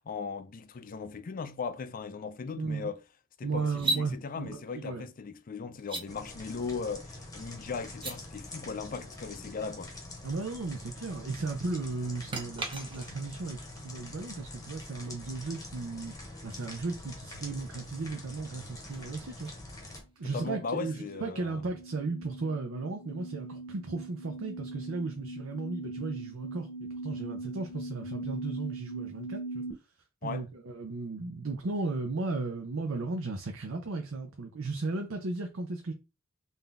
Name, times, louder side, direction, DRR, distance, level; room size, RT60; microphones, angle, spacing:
voice 1, 0.0-3.0 3.4-9.9 20.2-21.6 30.2-30.5, left 5 dB, 40° left, 0.4 m, -38 dB
voice 2, 2.6-2.9 3.4-5.1 10.2-16.2 16.4-19.5 20.2-29.6 30.2-35.9, right 3 dB, 90° right, 0.6 m, -35 dB
sound 1, 3.7-4.1 5.8-6.1 7.9-8.2 12.3-13.3 16.5-16.6 18.6-20.7, right 2 dB, 25° right, 0.8 m, -37 dB
sound 2, 6.1-20.0, left 2 dB, 15° left, 1.0 m, -45 dB
sound 3, 20.5-29.7, right 2 dB, 70° left, 0.7 m, -41 dB
3.8 x 2.7 x 3.4 m
head